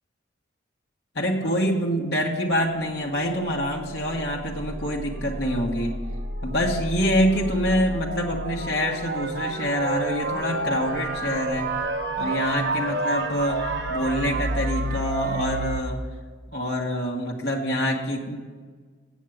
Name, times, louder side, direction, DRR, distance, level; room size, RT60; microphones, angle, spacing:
voice 1, 1.1-6.0 6.4-11.7 12.2-16.0 16.5-18.4, equal, 60° left, -1 dB, 1.4 m, -26 dB
sound 1, 2.5-15.8, right 2 dB, 60° right, 0.8 m, -30 dB
8.4 x 7.3 x 7.7 m, 1.5 s
head